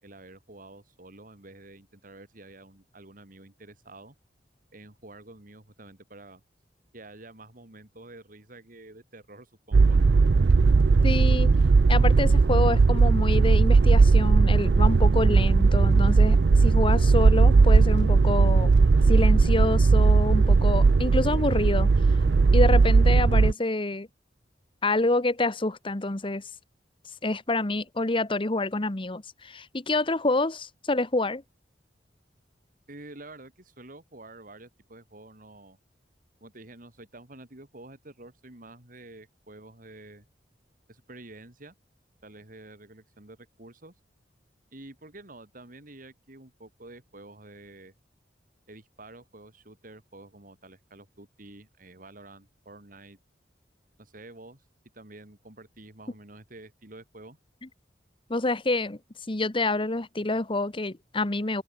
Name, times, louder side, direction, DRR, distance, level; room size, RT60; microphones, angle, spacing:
voice 1, 0.0-4.1 4.7-6.4 6.9-10.2 32.9-35.8 36.4-40.3 40.9-41.7 42.2-43.9 44.7-47.9 48.7-53.2 54.0-54.6 54.9-57.4, right 2 dB, 50° right, 3.4 m, -48 dB
sound 1, 9.7-23.5, right 4 dB, 70° right, 0.5 m, -18 dB
voice 2, 11.0-11.5 11.9-18.7 19.1-21.9 22.5-24.1 24.8-26.4 27.2-31.4 58.3-59.0 59.3-61.6, left 2 dB, 30° left, 1.2 m, -27 dB
open air
head